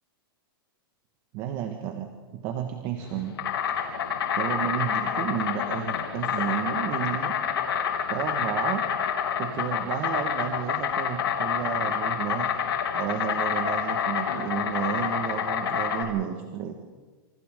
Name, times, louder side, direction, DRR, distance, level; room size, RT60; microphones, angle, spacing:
voice 1, 1.3-3.4 4.3-7.3 8.1-8.9 9.4-12.5 12.9-16.7, right 9 dB, 35° right, 5 dB, 1.7 m, -32 dB
Insect, 3.0-16.0, left 8 dB, 85° left, 3.6 m, -28 dB
28.0 x 28.0 x 3.9 m, 1.3 s
supercardioid pair, 160°, 12 cm